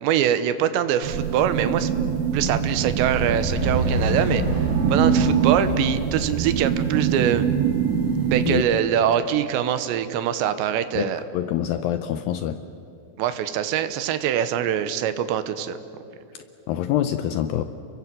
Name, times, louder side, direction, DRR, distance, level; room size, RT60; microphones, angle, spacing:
voice 1, 0.0-1.9 2.3-4.4 4.9-7.5 8.3-11.2 13.2-15.8, right 10 dB, 85° right, 11 dB, 3.2 m, -23 dB
sound 1, 1.0-8.6, right 8 dB, 65° right, 2.5 m, -24 dB
sound 2, 2.2-8.5, right 1 dB, 20° right, 3.3 m, -29 dB
voice 2, 10.9-12.6 16.3-17.6, left 11 dB, 90° left, 9 dB, 2.0 m, -26 dB
29.5 x 22.5 x 7.6 m, 2.8 s
omnidirectional pair, 5.0 m